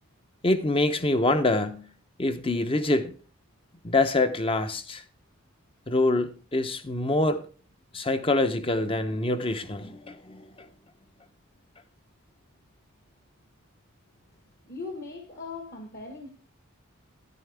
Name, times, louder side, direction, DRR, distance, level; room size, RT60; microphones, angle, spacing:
voice 1, 0.4-1.9 2.2-3.1 3.8-5.0 5.9-7.4 7.9-10.4, left 2 dB, 25° left, 0.7 m, -25 dB
voice 2, 14.6-16.3, left 3 dB, 45° left, 1.3 m, -39 dB
10.5 x 9.4 x 3.3 m
head